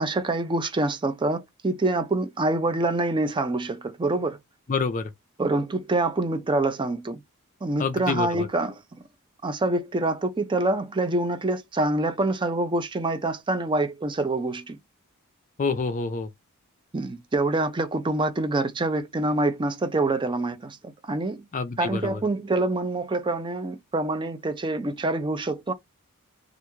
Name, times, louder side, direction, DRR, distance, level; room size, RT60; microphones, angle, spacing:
voice 1, 0.0-4.4 5.4-7.2 7.6-8.8 9.4-14.8 16.9-20.8 21.0-21.4 21.8-25.7, right 2 dB, 20° right, 0.4 m, -26 dB
voice 2, 4.7-5.1 7.8-8.5 15.6-16.3 21.5-22.2, left 4 dB, 35° left, 0.4 m, -27 dB
3.4 x 2.5 x 3.0 m
head